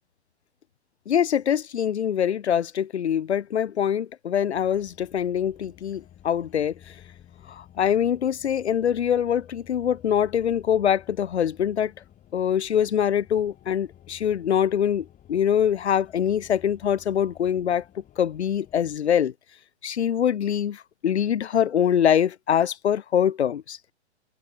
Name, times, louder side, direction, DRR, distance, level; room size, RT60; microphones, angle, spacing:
voice 1, 1.1-6.9 7.5-11.9 12.3-17.8 18.2-19.3 19.8-23.8, left 9 dB, 70° left, 1.6 m, -24 dB
sound 1, 4.5-19.0, left 11 dB, 25° left, 5.4 m, -52 dB
hypercardioid pair, 120°, 34 cm